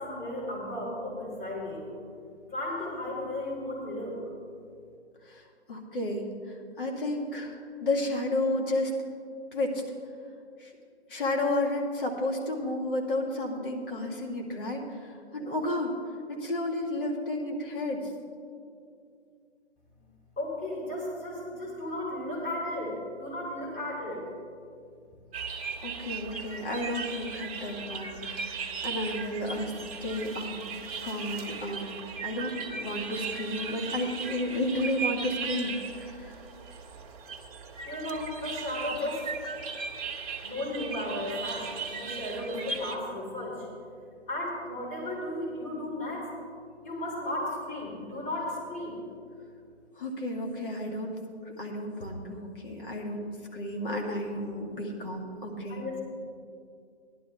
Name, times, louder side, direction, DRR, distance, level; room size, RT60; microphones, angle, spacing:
voice 1, 0.0-1.9 2.5-4.2 20.4-24.2 37.8-39.3 40.4-43.7 44.3-46.3 46.8-49.0 55.7-56.0, left 1 dB, 20° left, -4 dB, 3.2 m, -34 dB
voice 2, 5.7-8.9 9.5-9.8 10.6-10.7 11.1-16.0 16.3-18.1 25.5-29.7 30.0-30.6 31.0-36.3 42.5-42.6 50.0-51.2 51.5-55.9, left 1 dB, 50° left, 1 dB, 2.0 m, -32 dB
sound 1, 25.3-43.0, right 5 dB, 35° right, 1.0 m, -37 dB
15.5 x 11.5 x 3.5 m, 2.4 s
hypercardioid pair, 150°, 34 cm